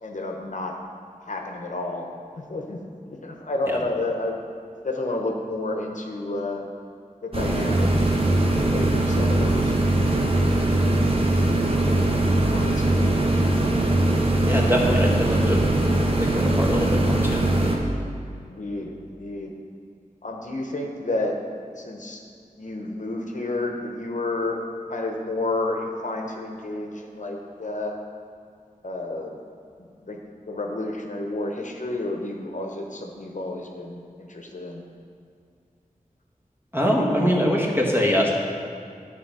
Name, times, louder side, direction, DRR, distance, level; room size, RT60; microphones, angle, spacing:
voice 1, 0.0-0.8 1.2-2.1 2.4-2.8 3.1-4.4 4.8-6.6 7.2-13.8 18.4-19.5 20.2-21.3 21.8-22.2 22.6-24.6 24.9-28.0 28.8-29.4 29.8-30.2 30.5-34.8, left 2 dB, 65° left, 1 dB, 0.9 m, -31 dB
sound 1, 7.3-17.8, right 1 dB, 45° right, 1.0 m, -21 dB
voice 2, 14.4-15.6 16.2-17.4 36.7-38.3, equal, 15° right, -2 dB, 1.4 m, -23 dB
9.9 x 4.0 x 6.0 m, 2.3 s
wide cardioid pair, 60°, 14 cm